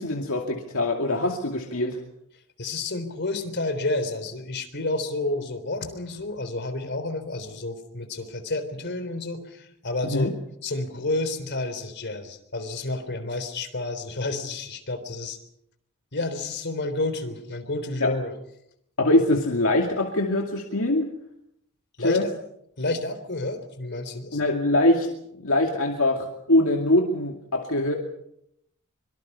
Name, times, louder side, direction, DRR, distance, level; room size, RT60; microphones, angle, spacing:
voice 1, 0.0-2.0 10.0-10.3 18.0-18.1 19.0-21.1 22.0-22.2 24.3-25.1 25.4-27.9, left 1 dB, 70° left, 2 dB, 2.4 m, -23 dB
voice 2, 2.6-10.3 10.6-15.4 16.1-18.3 22.0-22.3 22.8-24.4, left 2 dB, 55° left, 8 dB, 3.6 m, -30 dB
25.0 x 24.0 x 5.5 m, 0.76 s
head